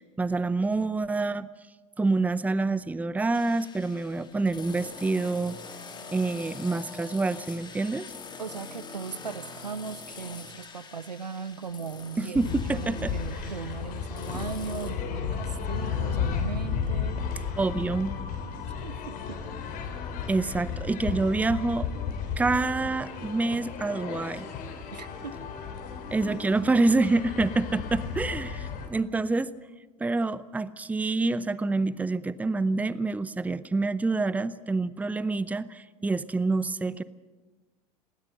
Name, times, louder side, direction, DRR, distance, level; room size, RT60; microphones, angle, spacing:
voice 1, 0.0-1.5 2.0-5.6 6.1-8.1 12.2-13.1 17.6-18.1 20.3-21.9 22.4-24.5 26.1-29.5 30.0-37.0, right 3 dB, 5° right, 18 dB, 0.7 m, -27 dB
sound 1, 3.3-14.9, left 5 dB, 20° left, 2.5 m, -45 dB
voice 2, 8.4-17.2 18.8-19.4 24.9-25.4, right 5 dB, 80° right, 16 dB, 0.8 m, -38 dB
sound 2, 12.3-28.9, left 6 dB, 40° left, 3.6 m, -34 dB
sound 3, 17.1-22.3, left 5 dB, 60° left, 4.6 m, -52 dB
19.5 x 18.5 x 7.9 m, 1.2 s
figure-of-eight pair, 80°, 21 cm